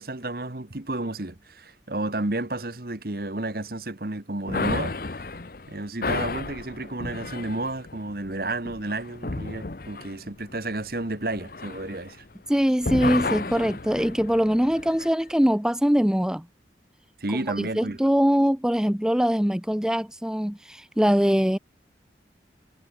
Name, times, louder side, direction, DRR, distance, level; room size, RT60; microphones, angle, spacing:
voice 1, 0.0-5.2 5.7-12.2 17.2-18.0, right 2 dB, 55° right, 1.5 m, -31 dB
sound 1, 4.5-12.5 12.8-15.1, left 3 dB, 50° left, 0.9 m, -33 dB
voice 2, 12.5-16.5 17.6-21.6, equal, 5° right, 0.5 m, -22 dB
head